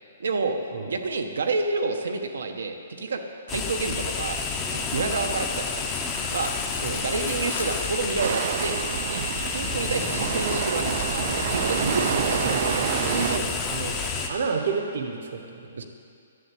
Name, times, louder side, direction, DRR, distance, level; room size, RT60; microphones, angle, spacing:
voice 1, 0.2-0.6 0.9-3.2 3.5-4.4 4.7-5.9 6.3-6.5 6.9-8.8 9.1-12.6 15.8-15.9, right 3 dB, 80° right, 5 dB, 1.1 m, -29 dB
sound 1, 3.5-14.3, left 5 dB, 10° left, 0.6 m, -30 dB
sound 2, 5.6-8.2 9.9-11.0, left 5 dB, 85° left, 1.2 m, -43 dB
sound 3, 8.2-13.4, right 9 dB, 35° right, 0.3 m, -28 dB
voice 2, 12.4-14.0 14.3-15.8, right 5 dB, 50° right, 4 dB, 1.0 m, -30 dB
11.5 x 7.1 x 8.3 m, 2.4 s
hypercardioid pair, 180°, 0 cm